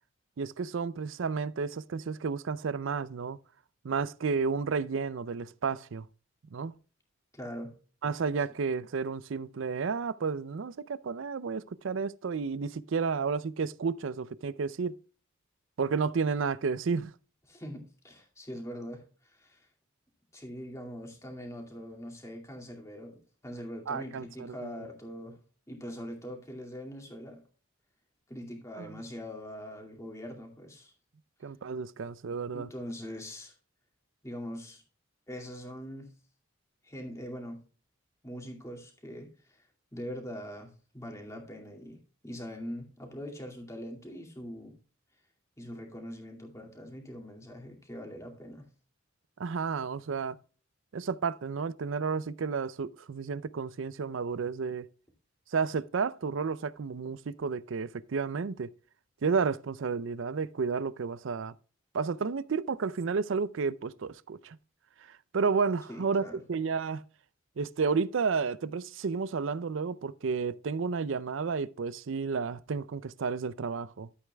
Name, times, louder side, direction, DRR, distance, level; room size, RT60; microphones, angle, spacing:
voice 1, 0.4-3.4 3.8-6.1 6.5-6.8 8.0-15.0 15.8-17.1 23.9-24.9 28.8-29.0 31.4-32.7 49.4-50.4 50.9-54.9 55.5-58.7 59.2-61.5 61.9-64.6 65.1-67.0 67.6-74.1, right 5 dB, 70° right, 0.5 m, -31 dB
voice 2, 7.3-7.7 17.5-19.7 20.3-25.4 25.7-27.4 28.3-30.9 32.5-33.5 34.2-34.8 35.3-36.1 36.8-37.6 38.2-39.6 39.9-42.0 42.2-44.7 45.6-48.7 65.9-66.4, equal, 15° left, 2.3 m, -42 dB
12.5 x 8.2 x 2.3 m
head